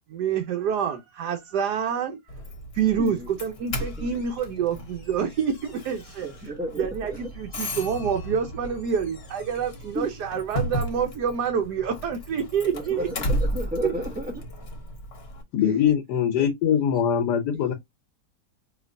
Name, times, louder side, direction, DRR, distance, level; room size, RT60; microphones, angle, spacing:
voice 1, 0.1-2.2 2.7-6.3 6.8-13.1 13.8-13.9, right 7 dB, 75° right, 1.2 m, -27 dB
Doorbell, 2.3-15.4, equal, 45° left, 1.1 m, -34 dB
voice 2, 3.0-3.3 4.0-4.1 6.2-7.3 9.9-10.1 12.7-14.4 15.7-15.8, equal, 10° right, 0.7 m, -33 dB
voice 3, 15.5-17.7, left 8 dB, 85° left, 1.3 m, -22 dB
5.1 x 2.9 x 2.6 m
omnidirectional pair, 1.8 m